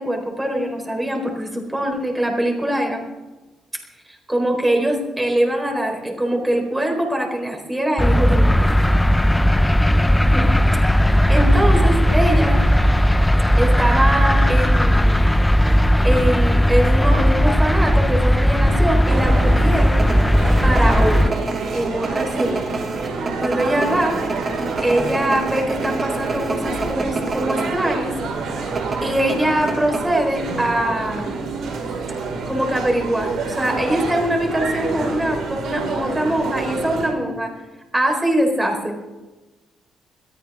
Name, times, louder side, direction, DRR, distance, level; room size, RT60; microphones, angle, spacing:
voice 1, 0.0-3.0 4.3-8.6 10.3-10.5 10.9-12.6 13.6-15.2 16.0-20.0 20.6-21.4 21.7-22.6 23.4-24.2 24.8-28.2 28.5-28.6 29.0-31.4 32.5-37.5 37.9-38.9, right 1 dB, 10° right, 1 dB, 4.5 m, -22 dB
sound 1, 8.0-21.3, equal, 5° left, 0.6 m, -16 dB
sound 2, 19.1-37.1, right 4 dB, 75° right, 5.2 m, -28 dB
sound 3, 20.0-27.7 28.0-28.1 28.8-30.4 30.7-30.8, right 3 dB, 30° right, 2.9 m, -28 dB
22.0 x 14.0 x 3.7 m, 1.2 s
cardioid pair, 90°, 0 cm